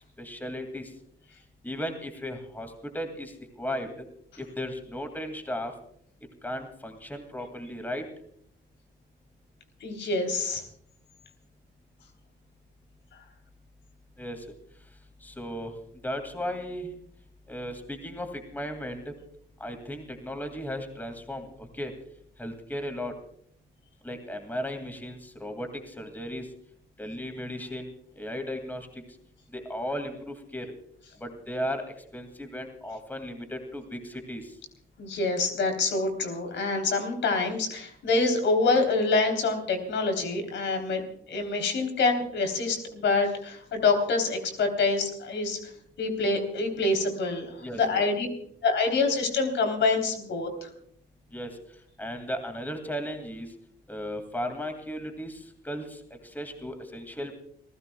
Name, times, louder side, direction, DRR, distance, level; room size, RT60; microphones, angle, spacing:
voice 1, 0.2-0.9 1.6-3.9 4.4-5.7 6.4-8.0 14.2-14.5 15.2-15.7 16.0-17.0 17.5-19.1 19.6-21.9 22.4-23.1 24.0-26.5 27.0-29.0 29.5-30.7 31.2-31.9 32.1-34.5 47.6-48.1 51.3-51.6 52.0-53.5 53.9-57.3, equal, 10° left, 6 dB, 2.3 m, -36 dB
voice 2, 9.8-10.6 35.0-41.0 41.3-45.6 46.0-48.3 48.6-50.7, left 3 dB, 70° left, 5 dB, 3.5 m, -26 dB
30.0 x 15.5 x 2.3 m, 0.66 s
cardioid pair, 90°, 20 cm